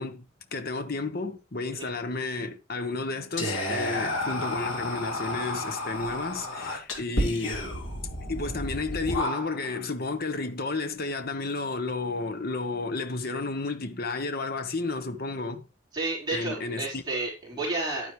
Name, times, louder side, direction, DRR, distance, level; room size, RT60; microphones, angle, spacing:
voice 1, 0.0-7.6 8.3-15.7 16.3-17.0 17.5-17.6, left 3 dB, 50° left, 1.1 m, -32 dB
Whispering, 3.4-9.8, left 1 dB, 80° left, 2.9 m, -31 dB
voice 2, 15.9-18.1, right 2 dB, 20° right, 4.6 m, -31 dB
11.0 x 9.6 x 3.2 m
head